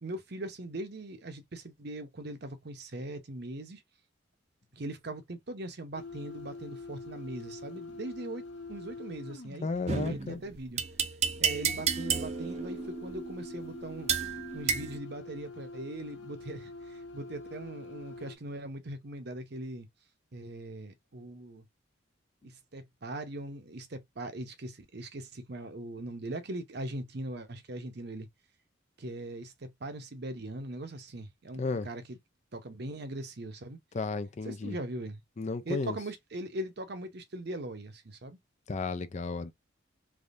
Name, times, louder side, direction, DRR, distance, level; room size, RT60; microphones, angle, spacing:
voice 1, 0.0-3.8 4.7-10.8 11.4-14.1 14.5-19.9 20.3-21.7 22.4-28.3 29.0-32.2 32.5-33.8 34.4-35.2 35.7-38.4, right 1 dB, 55° right, 0.8 m, -40 dB
sound 1, 5.9-9.8 11.7-18.4, left 2 dB, 60° left, 1.1 m, -45 dB
voice 2, 9.6-10.4 31.5-31.9 33.9-34.8 35.4-36.0 38.7-39.5, left 3 dB, 35° left, 0.4 m, -33 dB
sound 2, 9.9-15.0, right 6 dB, 35° right, 0.5 m, -32 dB
3.5 x 3.1 x 2.5 m
head